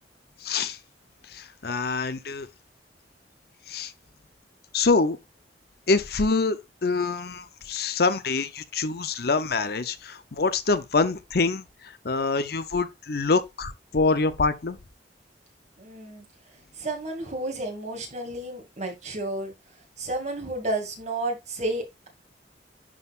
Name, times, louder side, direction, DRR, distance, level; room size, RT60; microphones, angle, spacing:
voice 1, 0.4-0.8 1.3-2.5 3.7-3.9 4.7-5.2 5.9-14.8, left 3 dB, 60° left, 0.7 m, -25 dB
voice 2, 15.8-16.3 16.8-19.5 20.0-22.1, right 2 dB, 40° right, 2.4 m, -31 dB
11.0 x 4.0 x 2.5 m
head